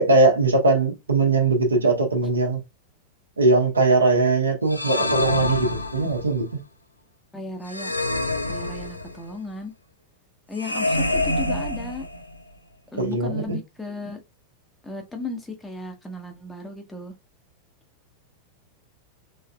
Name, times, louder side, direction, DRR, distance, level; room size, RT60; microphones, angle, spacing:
voice 1, 0.0-2.6 3.4-6.6 13.0-13.6, right 3 dB, 80° right, 1.2 m, -20 dB
sound 1, 4.7-6.4 7.7-9.3 10.6-12.4, left 2 dB, 85° left, 0.5 m, -26 dB
voice 2, 7.3-7.9 8.5-9.7 10.5-12.1 12.9-14.2 14.8-17.1, left 2 dB, 10° left, 1.0 m, -35 dB
3.7 x 3.4 x 2.2 m
figure-of-eight pair, 90°, 0 cm